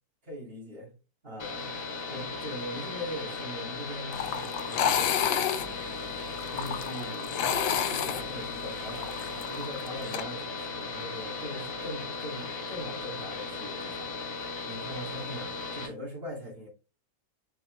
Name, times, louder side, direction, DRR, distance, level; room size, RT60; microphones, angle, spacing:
voice 1, 0.2-0.9 1.2-5.6 6.5-16.7, equal, 30° right, 2.7 m, -41 dB
sound 1, 1.4-15.9, left 3 dB, 45° left, 2.1 m, -37 dB
sound 2, 4.1-10.2, left 9 dB, 70° left, 1.3 m, -30 dB
7.3 x 4.6 x 3.3 m
omnidirectional pair, 2.0 m